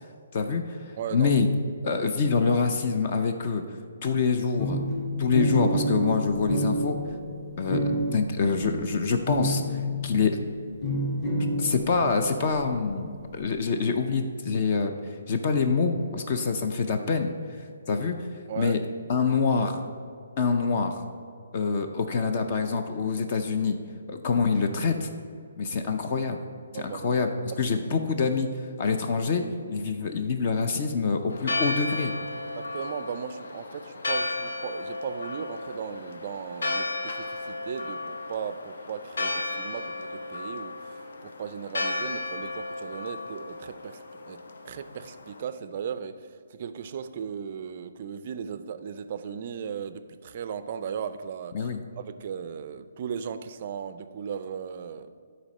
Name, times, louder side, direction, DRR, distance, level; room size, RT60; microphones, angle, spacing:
voice 1, 0.3-1.5 1.8-3.6 4.0-4.8 5.2-7.0 7.6-10.4 11.6-18.2 18.6-18.8 19.1-19.8 20.4-21.0 21.5-23.8 24.1-25.1 25.6-26.4 26.7-27.3 27.6-28.5 28.8-32.1 51.5-51.8, left 5 dB, 30° left, 6 dB, 0.5 m, -26 dB
voice 2, 1.0-1.3 18.5-18.8 26.7-27.2 27.5-27.7 32.5-55.1, right 7 dB, 35° right, 12 dB, 0.4 m, -37 dB
sound 1, 4.6-10.4 10.8-12.7, equal, 15° left, 0.9 m, -29 dB
Church bell, 31.3-45.4, left 2 dB, 75° left, 0.8 m, -34 dB
10.0 x 4.1 x 5.3 m, 2.2 s
hypercardioid pair, 170°, 0 cm